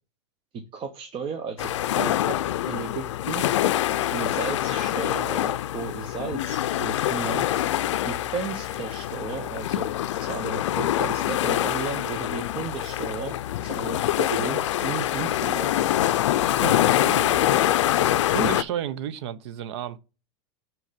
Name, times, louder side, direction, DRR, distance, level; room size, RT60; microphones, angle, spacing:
voice 1, 0.5-2.4 2.7-3.4 4.1-7.5 8.0-9.9 10.2-13.4 13.6-15.9, right 5 dB, 35° right, 0.9 m, -34 dB
sound 1, 1.6-18.6, left 13 dB, 85° left, 0.4 m, -25 dB
voice 2, 16.3-17.4 18.3-20.0, right 9 dB, 70° right, 0.7 m, -32 dB
6.3 x 4.5 x 5.2 m
hypercardioid pair, 115°, 15 cm